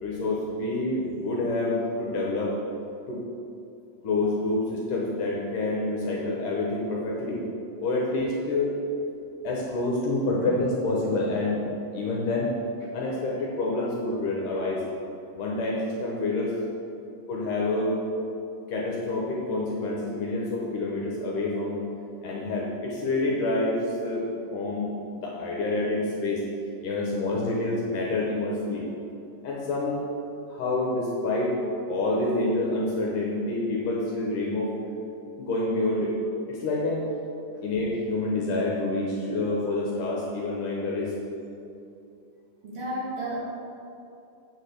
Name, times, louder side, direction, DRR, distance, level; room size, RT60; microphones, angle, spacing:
voice 1, 0.0-2.6 3.1-3.2 4.0-7.4 7.8-8.8 9.4-11.6 11.9-12.5 12.9-14.8 15.3-16.5 17.3-18.0 18.7-21.8 22.2-26.4 26.8-28.8 29.4-30.0 30.5-31.6 31.9-34.8 35.3-36.2 36.5-37.0 37.6-41.1, left 2 dB, 75° left, -3 dB, 2.4 m, -27 dB
voice 2, 42.6-43.4, right 1 dB, 50° right, -5 dB, 2.0 m, -33 dB
8.0 x 4.9 x 6.6 m, 2.7 s
omnidirectional pair, 3.9 m